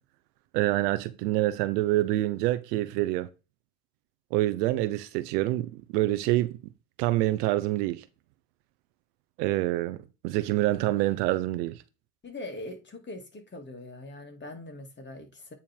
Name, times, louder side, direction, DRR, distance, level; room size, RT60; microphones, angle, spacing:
voice 1, 0.5-3.3 4.3-6.6 7.0-8.0 9.4-11.8, right 16 dB, 75° right, 0.9 m, -26 dB
voice 2, 12.2-15.5, left 2 dB, 20° left, 2.4 m, -42 dB
8.9 x 3.6 x 4.5 m
supercardioid pair, 95°, 48 cm